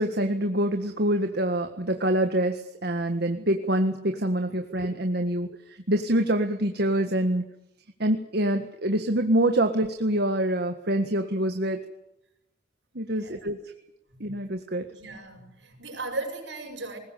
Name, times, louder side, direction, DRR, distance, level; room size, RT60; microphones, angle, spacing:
voice 1, 0.0-5.5 5.9-7.4 8.0-11.8 13.0-13.6 14.2-14.8, right 1 dB, 60° right, 6 dB, 1.7 m, -25 dB
voice 2, 13.0-13.4 14.1-14.2 14.9-17.0, right 2 dB, 75° right, 3 dB, 7.5 m, -37 dB
21.0 x 19.5 x 8.5 m, 0.85 s
head